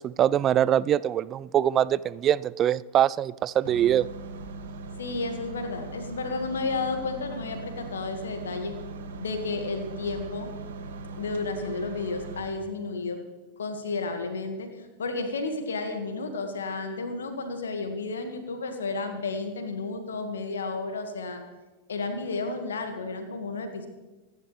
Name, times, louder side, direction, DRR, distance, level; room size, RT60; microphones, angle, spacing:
voice 1, 0.0-4.1, right 10 dB, 30° right, 19 dB, 0.4 m, -23 dB
sound 1, 3.6-12.4, right 3 dB, 65° right, 1.8 m, -40 dB
voice 2, 5.0-8.8 9.2-10.5 11.2-13.2 13.6-21.4 21.9-23.9, left 3 dB, 75° left, 7 dB, 1.7 m, -32 dB
26.0 x 11.0 x 3.3 m, 1.1 s
figure-of-eight pair, 90°, 0 cm